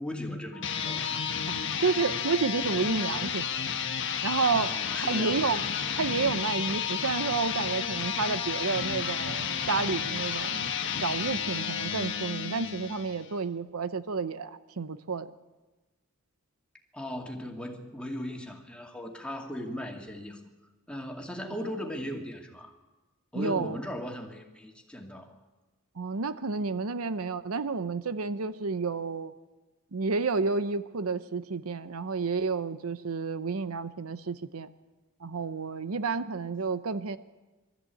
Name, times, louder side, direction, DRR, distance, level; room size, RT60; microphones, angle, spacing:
voice 1, 0.0-1.3 4.6-5.6 16.9-20.5 20.9-22.7 23.3-25.4, left 1 dB, 5° left, 1 dB, 2.3 m, -38 dB
sound 1, 0.5-13.3, left 7 dB, 60° left, 1.4 m, -32 dB
voice 2, 1.5-3.5 4.2-4.7 5.0-5.6 5.9-10.7 11.0-15.3 23.3-23.8 26.0-29.3 29.9-34.7 35.2-37.2, right 4 dB, 80° right, 13 dB, 0.8 m, -30 dB
23.0 x 13.5 x 8.5 m, 1.2 s
head